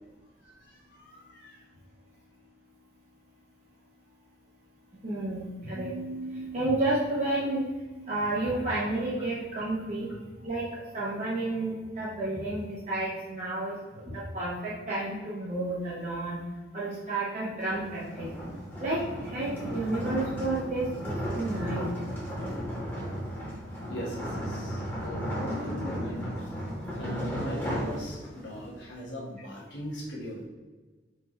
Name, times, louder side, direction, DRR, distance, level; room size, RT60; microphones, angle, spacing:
voice 1, 0.4-1.7 23.9-26.5 27.0-30.5, equal, 75° left, -4 dB, 1.2 m, -39 dB
voice 2, 5.0-7.6 7.9-16.4 16.7-18.3 18.8-21.9, right 2 dB, 40° right, -7 dB, 0.9 m, -31 dB
sound 1, 17.6-28.6, equal, 10° left, 1.2 m, -35 dB
4.7 x 2.6 x 4.2 m, 1.3 s
head